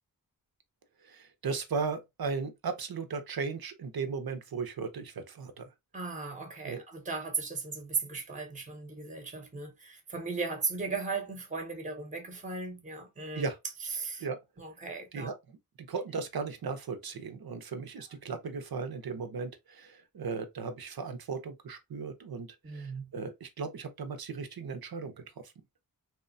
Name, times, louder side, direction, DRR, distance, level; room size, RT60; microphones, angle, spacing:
voice 1, 1.0-5.7 6.6-6.8 13.3-13.6 14.2-14.4 15.1-15.3 15.9-25.2, right 5 dB, 85° right, 0.6 m, -36 dB
voice 2, 5.9-13.4 13.8-14.3 14.6-15.3 22.6-23.1, right 4 dB, 20° right, 0.7 m, -37 dB
2.9 x 2.1 x 2.5 m
wide cardioid pair, 80°, 36 cm